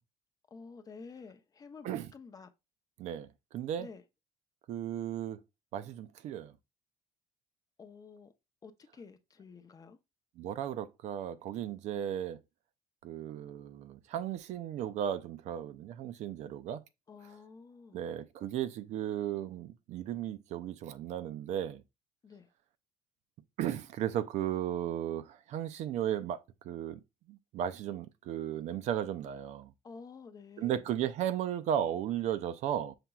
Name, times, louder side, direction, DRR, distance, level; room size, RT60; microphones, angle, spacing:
voice 1, 0.5-2.5 3.8-4.0 7.8-8.3 8.6-10.0 17.1-18.0 22.2-22.5 29.8-30.8, left 5 dB, 30° left, 0.5 m, -50 dB
voice 2, 3.5-3.9 4.7-5.4 5.7-6.5 10.4-12.4 13.0-16.8 17.9-21.8 23.6-27.0 27.3-29.7 30.6-33.0, right 10 dB, 60° right, 0.4 m, -35 dB
5.8 x 2.9 x 2.2 m
cardioid pair, 105°, 13 cm